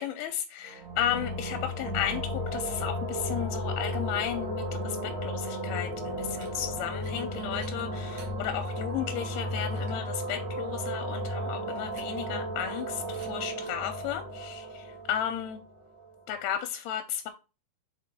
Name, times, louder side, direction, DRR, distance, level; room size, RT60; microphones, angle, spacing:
voice 1, 0.0-15.6 16.3-17.3, left 10 dB, 85° left, 2.4 m, -34 dB
sound 1, 0.6-16.2, equal, 85° right, 0.8 m, -34 dB
sound 2, 6.2-6.5 6.9-7.2 7.5-8.3 8.9-9.0 9.4-9.5 9.7-10.0 11.7-12.3 12.6-12.8 13.1-13.3 13.7-13.8, right 4 dB, 55° right, 2.3 m, -54 dB
6.6 x 4.2 x 3.7 m
omnidirectional pair, 4.7 m